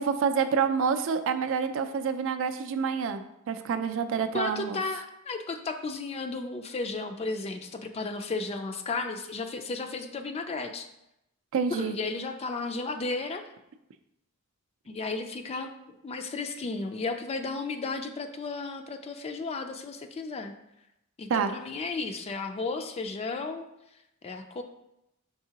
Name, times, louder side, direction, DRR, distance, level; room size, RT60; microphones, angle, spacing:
voice 1, 0.0-3.2 3.5-4.8 11.5-12.0 21.3-21.5, right 6 dB, 65° right, 8 dB, 0.4 m, -27 dB
voice 2, 4.3-10.9 11.7-13.4 14.9-20.5 21.2-23.7 24.2-24.6, left 3 dB, 30° left, 6 dB, 0.3 m, -34 dB
4.7 x 3.6 x 2.8 m, 0.84 s
head